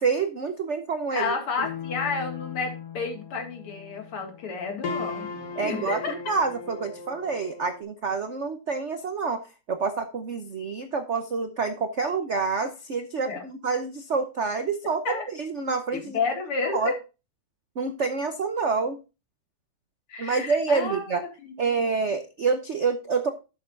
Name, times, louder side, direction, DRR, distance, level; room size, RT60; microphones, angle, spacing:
voice 1, 0.0-1.3 5.6-16.2 16.7-16.9 17.8-19.0 20.2-21.2 21.6-23.3, right 4 dB, 75° right, 8 dB, 0.6 m, -27 dB
voice 2, 1.1-5.3 5.6-6.1 13.2-13.4 15.0-15.3 15.9-16.9 20.1-21.8, left 4 dB, 85° left, 3 dB, 3.0 m, -31 dB
sound 1, 1.6-7.8, left 5 dB, 55° left, 1.7 m, -37 dB
11.5 x 7.8 x 2.5 m, 0.29 s
omnidirectional pair, 2.4 m